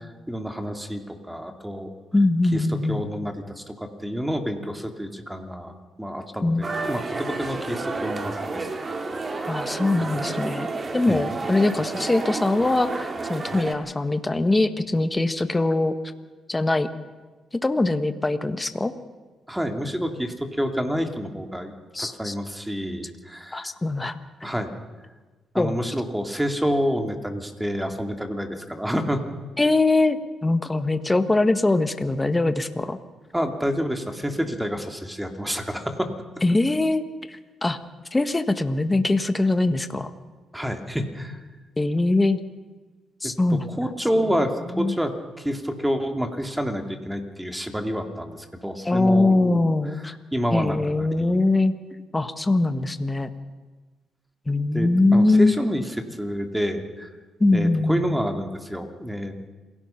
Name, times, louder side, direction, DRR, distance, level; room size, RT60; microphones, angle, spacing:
voice 1, 0.3-1.0 1.3-1.9 2.5-8.7 9.2-9.4 11.1-11.2 19.5-21.7 22.0-23.7 24.4-24.7 25.5-29.2 33.3-36.1 40.5-41.4 43.2-49.6 50.3-51.4 54.7-57.1 57.5-59.5, equal, 5° right, 5 dB, 2.9 m, -28 dB
voice 2, 2.1-3.0 6.4-6.6 9.5-10.7 10.9-15.9 16.5-16.9 17.6-18.9 21.9-22.3 23.5-24.2 25.6-25.8 29.6-33.0 36.4-37.8 38.1-40.1 41.8-42.4 43.2-43.7 44.7-45.0 48.8-50.1 50.5-51.7 52.1-53.3 54.5-55.5 57.4-58.2, left 2 dB, 20° left, 10 dB, 1.5 m, -22 dB
sound 1, 6.6-13.8, right 3 dB, 40° right, 2.6 m, -31 dB
27.0 x 17.5 x 5.9 m, 1.3 s
supercardioid pair, 65°, 0 cm